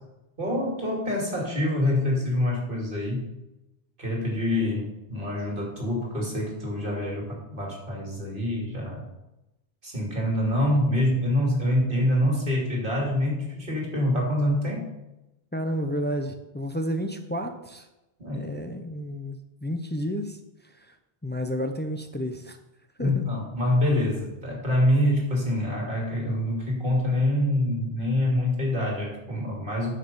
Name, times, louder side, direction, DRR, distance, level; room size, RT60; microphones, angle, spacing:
voice 1, 0.4-3.3 4.0-9.1 9.8-14.9 18.2-18.5 23.0-30.0, left 1 dB, 55° right, -2 dB, 2.9 m, -26 dB
voice 2, 15.5-17.9 18.3-20.4 20.8-20.9 21.2-22.6 23.0-23.2, equal, 10° left, 6 dB, 0.6 m, -31 dB
9.7 x 6.8 x 5.5 m, 0.96 s
omnidirectional pair, 1.1 m